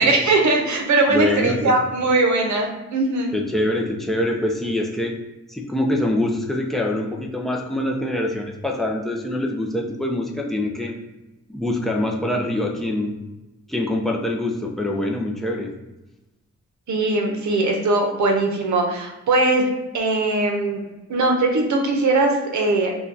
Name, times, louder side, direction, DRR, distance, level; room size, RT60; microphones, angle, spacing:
voice 1, 0.0-3.3 16.9-19.6 19.9-20.8 21.1-22.9, right 2 dB, 75° right, 2 dB, 0.7 m, -20 dB
voice 2, 1.1-1.8 3.3-5.2 5.5-11.0 11.5-13.2 13.7-15.7, left 1 dB, ahead, 0 dB, 0.4 m, -24 dB
4.6 x 2.3 x 2.6 m, 1.0 s
wide cardioid pair, 135°, 29 cm